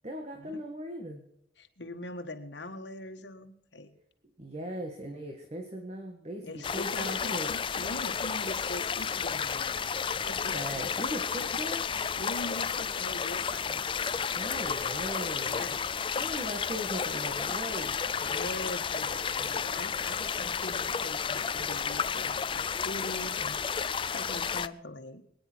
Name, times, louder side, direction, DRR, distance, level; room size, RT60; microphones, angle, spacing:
voice 1, 0.0-1.2 4.4-7.5 10.5-11.8 14.3-15.7 16.1-18.0, equal, 35° right, 3 dB, 1.8 m, -38 dB
voice 2, 1.6-4.0 6.4-9.7 10.2-10.8 12.2-13.8 15.4-15.8 16.2-16.3 18.2-25.2, left 1 dB, 70° left, 6 dB, 1.7 m, -42 dB
sound 1, 6.6-24.7, left 6 dB, 30° left, 0.4 m, -32 dB
25.0 x 10.0 x 4.6 m, 0.79 s
head